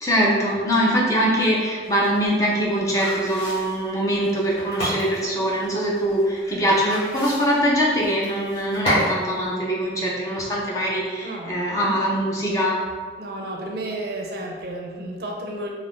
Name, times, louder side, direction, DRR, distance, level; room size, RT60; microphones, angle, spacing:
voice 1, 0.0-12.8, equal, 20° left, -4 dB, 0.4 m, -22 dB
sound 1, 1.8-9.2 9.5-9.6, equal, 35° left, 1.0 m, -31 dB
voice 2, 11.2-11.6 13.2-15.7, right 1 dB, 60° right, 0 dB, 0.4 m, -32 dB
2.4 x 2.3 x 3.5 m, 1.6 s
head